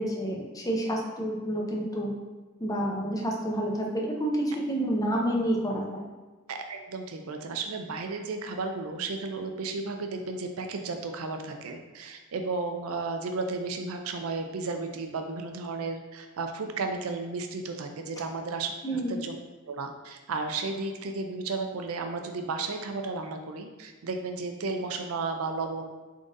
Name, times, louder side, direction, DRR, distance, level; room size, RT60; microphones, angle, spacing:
voice 1, 0.0-2.2 2.6-6.1 18.8-19.2, right 1 dB, 15° left, -1 dB, 0.6 m, -29 dB
voice 2, 6.5-19.4 19.7-25.9, right 3 dB, 70° right, 5 dB, 0.5 m, -33 dB
3.7 x 3.7 x 2.6 m, 1.2 s
head